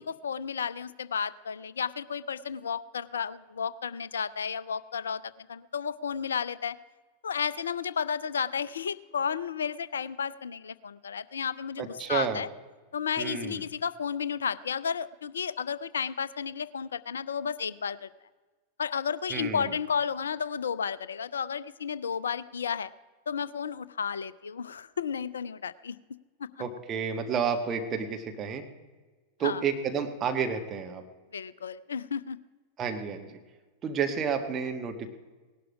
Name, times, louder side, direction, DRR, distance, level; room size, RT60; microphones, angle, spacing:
voice 1, 0.1-6.8 7.2-12.5 12.9-18.1 18.8-22.9 23.3-26.0 26.4-26.5 29.4-29.6 31.3-32.4, left 7 dB, 70° left, 18 dB, 0.5 m, -32 dB
voice 2, 11.8-12.4 13.2-13.6 19.3-19.7 26.6-28.6 29.4-31.0 32.8-33.3 33.8-35.1, right 6 dB, 30° right, 5 dB, 1.4 m, -30 dB
18.5 x 11.5 x 4.8 m, 1.3 s
figure-of-eight pair, 90°, 0 cm